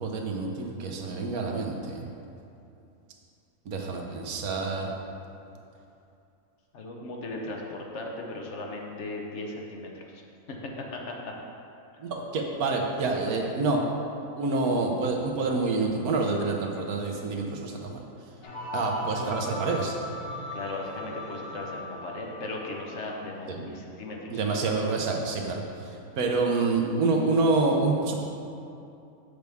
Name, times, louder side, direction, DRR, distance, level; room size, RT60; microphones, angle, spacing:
voice 1, 0.0-2.1 3.7-4.9 12.0-13.8 14.4-18.0 18.7-20.0 23.5-23.8 24.3-28.1, right 3 dB, 80° right, 1 dB, 1.3 m, -27 dB
voice 2, 6.7-10.2 10.5-10.6 10.9-11.3 18.4-18.6 20.5-24.4, left 2 dB, 55° left, 0 dB, 1.1 m, -37 dB
sound 1, 18.4-23.0, left 1 dB, 20° left, 1.4 m, -38 dB
7.9 x 6.6 x 3.5 m, 2.7 s
omnidirectional pair, 1.5 m